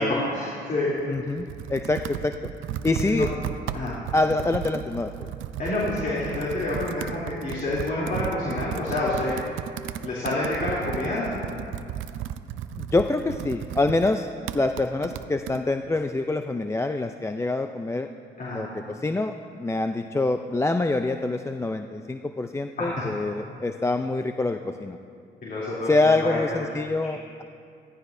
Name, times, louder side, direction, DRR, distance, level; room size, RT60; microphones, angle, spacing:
voice 1, 0.3-0.9 3.0-3.3 3.7-4.0 5.6-9.4 10.0-11.4 18.4-18.6 22.8-22.9 25.4-25.9 26.2-26.4, left 2 dB, 45° left, -7 dB, 3.1 m, -28 dB
Computer keyboard, 1.0-15.6, right 10 dB, 80° right, 0.5 m, -35 dB
voice 2, 1.1-2.5 2.8-3.4 4.1-5.3 12.8-18.1 18.4-25.0 25.8-27.4, left 2 dB, 15° left, 6 dB, 0.4 m, -26 dB
16.0 x 14.5 x 2.7 m, 2.4 s
cardioid pair, 90°, 20 cm